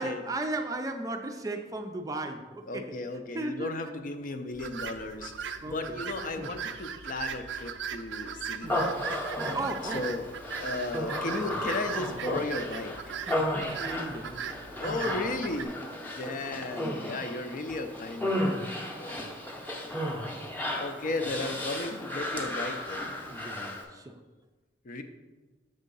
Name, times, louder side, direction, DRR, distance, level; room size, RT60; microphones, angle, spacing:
voice 1, 0.0-3.0 3.3-3.9 5.6-6.0 6.4-6.5 8.6-8.8 9.5-10.1 13.3-14.5 15.0-15.2 16.8-17.0 19.1-19.3 23.2-24.2, right 2 dB, 20° right, 5 dB, 0.4 m, -36 dB
voice 2, 2.7-9.0 9.8-10.3 10.6-13.1 14.8-19.4 20.8-23.1 24.8-25.0, left 2 dB, 50° left, 7 dB, 0.5 m, -35 dB
sound 1, 4.5-15.7, right 7 dB, 85° right, 0.4 m, -39 dB
Human voice, 8.7-23.8, left 1 dB, 10° left, 0.7 m, -34 dB
6.7 x 3.6 x 5.3 m, 1.3 s
head